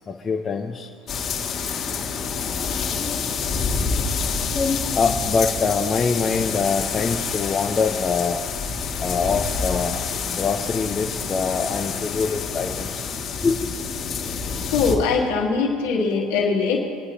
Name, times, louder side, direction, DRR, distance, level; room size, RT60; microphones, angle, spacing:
voice 1, 0.1-0.9 3.0-3.3 4.5-8.4 9.0-10.0 10.3-13.0 13.4-13.6, left 5 dB, 30° left, 0 dB, 0.8 m, -24 dB
sound 1, 1.1-14.9, left 5 dB, 50° left, 2.2 m, -27 dB
voice 2, 14.7-16.8, left 4 dB, 80° left, -3 dB, 2.5 m, -21 dB
27.5 x 9.6 x 2.9 m, 2.6 s
hypercardioid pair, 80°, 0 cm